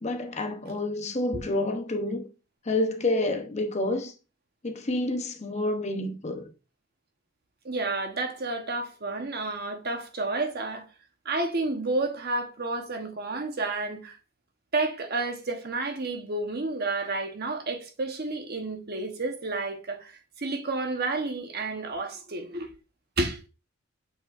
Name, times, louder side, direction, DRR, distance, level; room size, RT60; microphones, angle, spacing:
voice 1, 0.0-2.3 2.7-4.1 4.6-6.5, left 2 dB, 35° left, 0.8 m, -28 dB
voice 2, 7.6-10.8 11.2-14.2 14.7-20.1 20.4-22.7 23.2-23.4, right 2 dB, 50° right, 1.1 m, -30 dB
8.2 x 4.6 x 2.5 m
head